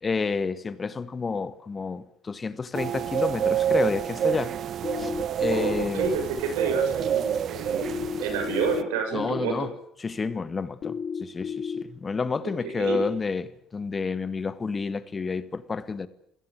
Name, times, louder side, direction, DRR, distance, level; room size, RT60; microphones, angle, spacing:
voice 1, 0.0-4.5 5.0-5.1 5.4-6.1 9.1-9.7 10.0-16.1, left 4 dB, 30° left, 1.7 m, -30 dB
sound 1, 2.7-8.8, right 9 dB, 50° right, 1.1 m, -28 dB
sound 2, 4.8-5.8 7.8-8.8 10.8-11.8, left 7 dB, 50° left, 2.0 m, -32 dB
voice 2, 5.5-9.6 12.6-13.0, right 5 dB, 90° right, 6.9 m, -29 dB
27.0 x 16.5 x 9.6 m
supercardioid pair, 80°, 0 cm